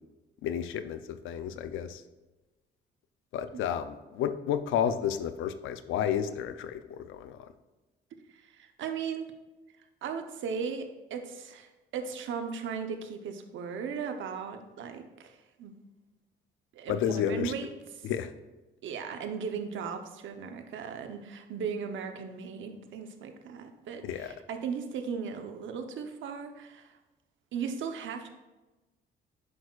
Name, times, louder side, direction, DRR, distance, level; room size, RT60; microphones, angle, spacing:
voice 1, 0.4-2.0 3.3-7.4 16.9-17.5 18.0-18.3 24.0-24.3, left 9 dB, 90° left, 10 dB, 0.6 m, -31 dB
voice 2, 8.1-9.3 10.0-15.7 16.7-17.7 18.0-18.1 18.8-27.0 27.5-28.3, right 6 dB, 75° right, 6 dB, 0.9 m, -37 dB
9.7 x 6.2 x 2.4 m, 1.1 s
cardioid pair, 90°, 20 cm